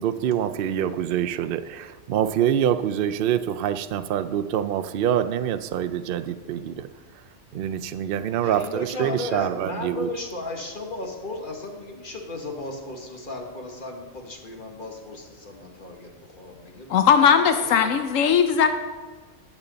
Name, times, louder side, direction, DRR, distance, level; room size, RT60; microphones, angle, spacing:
voice 1, 0.0-6.9 7.5-10.1, right 10 dB, 65° right, 10 dB, 0.6 m, -25 dB
voice 2, 8.4-17.0 17.5-17.7, left 2 dB, 40° left, 1 dB, 1.5 m, -35 dB
voice 3, 16.9-18.7, left 7 dB, 80° left, 8 dB, 1.0 m, -18 dB
14.0 x 7.1 x 4.0 m, 1.4 s
omnidirectional pair, 1.3 m